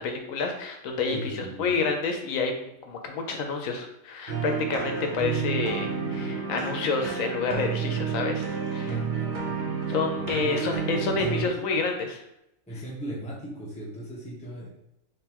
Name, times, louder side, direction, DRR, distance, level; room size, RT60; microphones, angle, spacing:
voice 1, 0.0-8.9 9.9-12.2, left 4 dB, 80° left, 4 dB, 1.0 m, -29 dB
voice 2, 1.1-1.8 8.9-9.6 10.2-11.6 12.7-14.7, right 1 dB, 5° left, -5 dB, 0.8 m, -38 dB
sound 1, 4.3-11.5, right 6 dB, 50° right, 0.6 m, -30 dB
3.6 x 3.2 x 2.9 m, 0.83 s
omnidirectional pair, 1.4 m